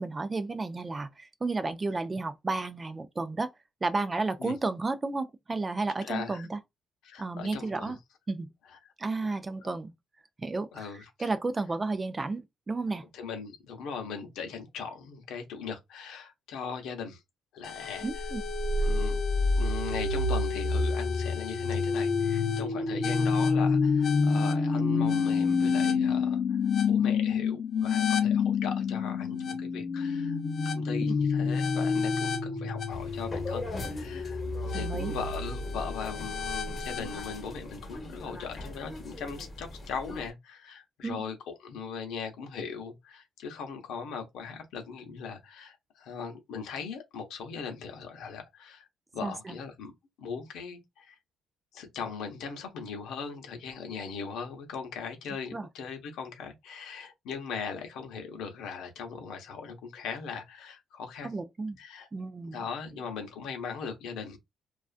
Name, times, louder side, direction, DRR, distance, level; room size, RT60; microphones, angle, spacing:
voice 1, 0.0-3.5 3.8-6.6 7.2-8.0 8.3-8.5 9.0-9.9 10.4-10.9 11.2-12.4 12.7-13.0 18.0-18.4 34.7-35.1 41.0-41.2 49.2-49.6 55.5-55.7 61.2-61.8 62.1-62.6, right 3 dB, 25° right, 0.4 m, -32 dB
voice 2, 6.0-6.5 7.0-8.0 8.7-8.8 9.2-9.4 10.7-11.3 13.1-17.2 17.5-18.3 18.8-19.2 19.6-26.6 26.9-30.4 30.6-48.9 49.1-49.9 50.2-51.2 51.7-61.3 61.8-62.1 62.5-64.4, left 6 dB, 85° left, 0.7 m, -39 dB
sound 1, 17.6-37.4, left 4 dB, 50° left, 0.6 m, -28 dB
sound 2, 32.9-40.3, left 2 dB, 35° left, 0.9 m, -42 dB
2.4 x 2.3 x 2.4 m
cardioid pair, 90°, 0 cm